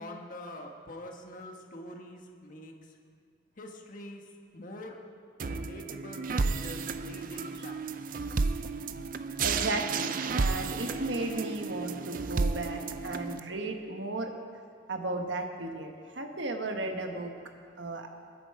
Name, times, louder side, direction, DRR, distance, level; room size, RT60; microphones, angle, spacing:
voice 1, 0.0-2.7 3.6-4.2 4.5-5.0 5.4-7.8, left 1 dB, 40° left, 2 dB, 1.4 m, -44 dB
sound 1, 5.4-13.4, right 4 dB, 45° right, 0.5 m, -32 dB
voice 2, 9.4-14.3 14.9-17.3 17.8-18.1, right 2 dB, 65° right, 4 dB, 1.4 m, -35 dB
21.5 x 10.0 x 4.8 m, 2.2 s
head